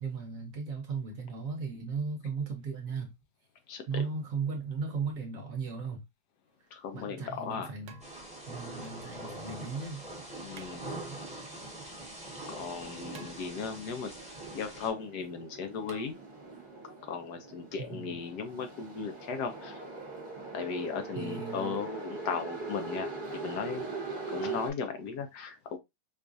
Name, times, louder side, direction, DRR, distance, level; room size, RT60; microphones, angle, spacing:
voice 1, 0.0-3.1 3.9-6.0 6.9-8.0 8.5-10.0 17.9-18.2 21.1-21.8, right 5 dB, 60° right, 1.0 m, -36 dB
sound 1, 6.5-6.6 7.8-8.6 10.5-11.3 13.1-13.9 15.9-16.1, right 7 dB, 75° right, 0.7 m, -53 dB
voice 2, 6.7-7.7 10.4-10.9 12.5-14.1 14.5-16.2 17.1-19.8 20.5-24.0 24.3-25.8, left 6 dB, 70° left, 1.1 m, -36 dB
Thunder / Rain, 8.0-14.9, right 1 dB, 5° right, 1.1 m, -43 dB
sound 2, 14.1-24.7, right 3 dB, 35° right, 1.1 m, -41 dB
4.6 x 2.4 x 2.5 m
omnidirectional pair, 2.0 m